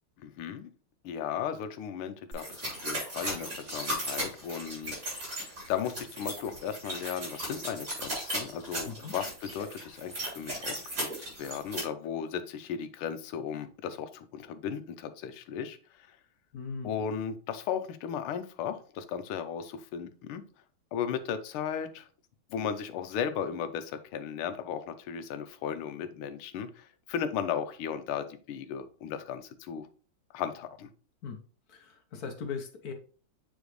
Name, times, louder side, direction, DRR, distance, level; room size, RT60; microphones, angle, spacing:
voice 1, 0.2-0.7 1.0-4.9 5.7-16.2 16.8-20.4 20.9-22.1 22.5-29.9 30.3-30.9, left 8 dB, 85° left, 10 dB, 1.6 m, -36 dB
sound 1, 2.3-11.8, right 1 dB, 40° right, 3.4 m, -36 dB
voice 2, 16.5-16.9 31.2-31.4 31.7-32.9, left 5 dB, 60° left, 6 dB, 1.1 m, -39 dB
7.1 x 4.4 x 3.1 m, 0.40 s
omnidirectional pair, 2.3 m